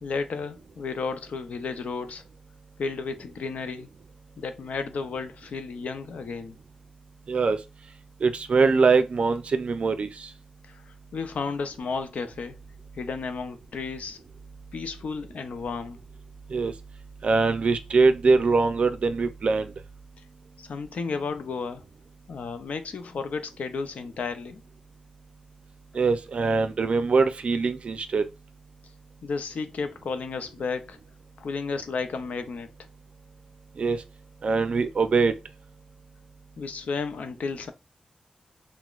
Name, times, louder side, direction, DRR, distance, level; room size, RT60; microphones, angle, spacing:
voice 1, 0.0-2.2 2.8-3.9 4.4-6.6 10.7-12.6 12.9-14.2 14.7-16.0 20.6-21.8 22.3-24.6 29.2-31.0 31.4-32.7 36.6-37.7, left 4 dB, 90° left, 0.5 m, -33 dB
voice 2, 7.3-7.6 8.2-10.3 16.5-16.7 17.2-19.7 25.9-28.3 33.8-34.0 34.4-35.4, right 4 dB, 55° right, 0.4 m, -22 dB
5.8 x 2.1 x 2.4 m
wide cardioid pair, 160°, 2 cm